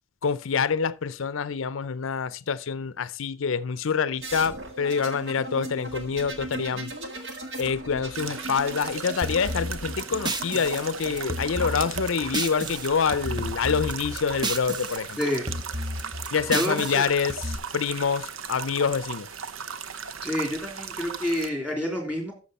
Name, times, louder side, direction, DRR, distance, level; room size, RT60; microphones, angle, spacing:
voice 1, 0.2-6.9 7.6-15.2 16.3-19.3, left 6 dB, 75° left, 0.5 m, -26 dB
sound 1, 4.2-12.8 13.9-14.5, right 1 dB, 55° right, 1.8 m, -39 dB
sound 2, 8.1-21.5, right 7 dB, 75° right, 0.8 m, -37 dB
sound 3, 9.2-12.9 13.1-15.0 15.2-17.6, right 1 dB, 20° right, 0.7 m, -32 dB
voice 2, 16.5-17.0 20.2-22.3, left 1 dB, 5° right, 3.3 m, -28 dB
13.5 x 6.4 x 4.2 m
head